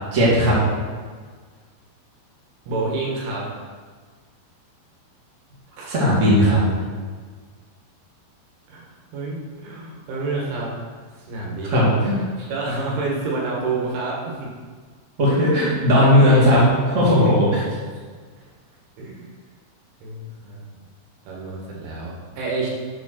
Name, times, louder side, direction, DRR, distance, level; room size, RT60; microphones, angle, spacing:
voice 1, 0.1-0.6 5.9-6.6 11.7-12.2 15.2-17.6, equal, 30° right, -7 dB, 1.4 m, -16 dB
voice 2, 2.7-3.5 5.8-6.0 8.7-10.8 11.2-11.9 12.5-14.5 19.0-19.3 20.0-20.7 21.3-22.7, right 3 dB, 75° right, -3 dB, 3.8 m, -28 dB
7.8 x 5.1 x 6.4 m, 1.6 s
omnidirectional pair, 5.7 m